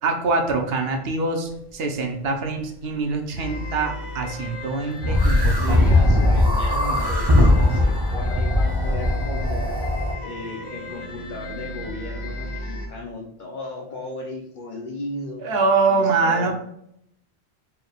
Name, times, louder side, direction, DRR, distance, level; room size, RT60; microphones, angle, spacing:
voice 1, 0.0-6.0 15.4-16.5, right 3 dB, 70° right, 4 dB, 0.8 m, -24 dB
sound 1, 3.4-12.9, left 1 dB, 80° left, 1.0 m, -35 dB
sound 2, 5.0-10.1, left 1 dB, 40° right, 0.3 m, -19 dB
voice 2, 5.6-9.7 10.2-15.6 15.8-16.5, left 2 dB, 55° left, 1 dB, 0.7 m, -35 dB
4.4 x 3.3 x 2.3 m, 0.74 s
omnidirectional pair, 1.1 m